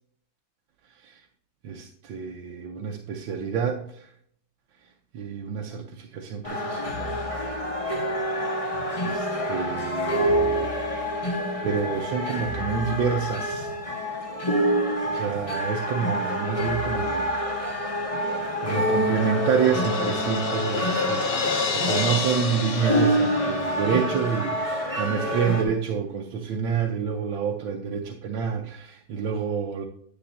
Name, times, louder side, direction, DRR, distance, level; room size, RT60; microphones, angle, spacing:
voice 1, 1.6-3.8 5.1-7.2 9.0-10.7 11.6-13.7 14.8-17.4 18.6-29.9, right 7 dB, 80° right, 2 dB, 1.5 m, -28 dB
sound 1, 6.4-25.6, equal, 20° left, 1.1 m, -27 dB
Crash cymbal, 18.3-24.0, left 5 dB, 80° left, 0.5 m, -30 dB
10.0 x 8.3 x 2.7 m, 0.63 s
omnidirectional pair, 2.1 m